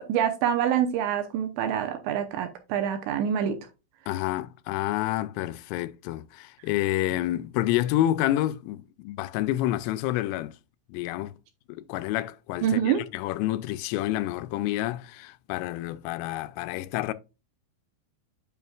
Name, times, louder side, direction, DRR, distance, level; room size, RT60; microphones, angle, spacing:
voice 1, 0.0-3.6 12.6-13.0, right 9 dB, 80° right, 2.8 m, -26 dB
voice 2, 4.1-10.6 10.9-11.4 11.7-17.1, left 14 dB, 85° left, 3.1 m, -29 dB
9.4 x 5.6 x 2.3 m
omnidirectional pair, 5.7 m